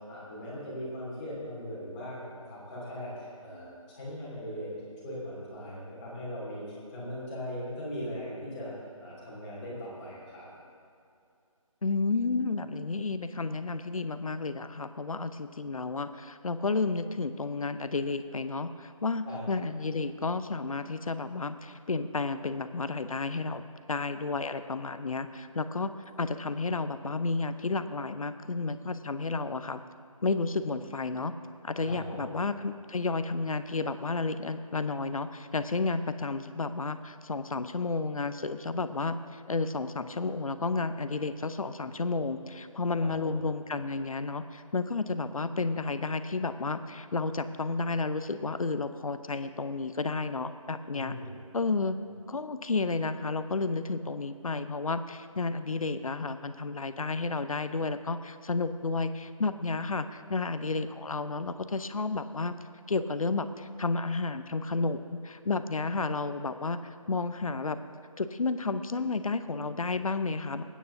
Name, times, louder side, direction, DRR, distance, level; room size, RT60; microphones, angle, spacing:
voice 1, 0.1-2.2 2.5-4.7 5.0-8.7 9.0-10.5 19.2-19.4 31.8-32.3 43.0-43.4 50.9-51.3, equal, 15° left, -8 dB, 2.7 m, -39 dB
voice 2, 11.8-23.6 23.9-25.9 26.2-29.8 30.2-31.3 31.6-51.2 51.5-52.0 52.3-62.5 62.9-67.8 68.2-70.6, left 3 dB, 75° left, 11 dB, 0.7 m, -31 dB
25.5 x 9.3 x 2.7 m, 2.4 s
figure-of-eight pair, 165°, 18 cm